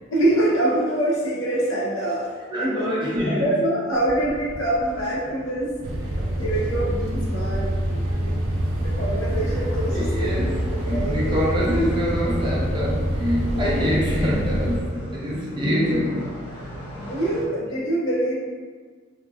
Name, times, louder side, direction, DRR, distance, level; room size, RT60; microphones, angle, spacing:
voice 1, 0.1-2.3 2.6-5.7 6.4-8.3 8.8-10.3 10.7-11.4 15.7-16.0 16.7-18.3, right 1 dB, 75° left, -5 dB, 0.8 m, -25 dB
voice 2, 2.5-3.5 6.2-6.4 8.0-8.3 9.4-9.6 9.9-16.2, equal, 25° right, -6 dB, 0.5 m, -25 dB
sound 1, 3.9-17.5, equal, 15° left, 0.8 m, -37 dB
sound 2, 5.8-14.8, right 1 dB, 80° right, 0.5 m, -26 dB
2.9 x 2.7 x 2.3 m, 1.5 s
head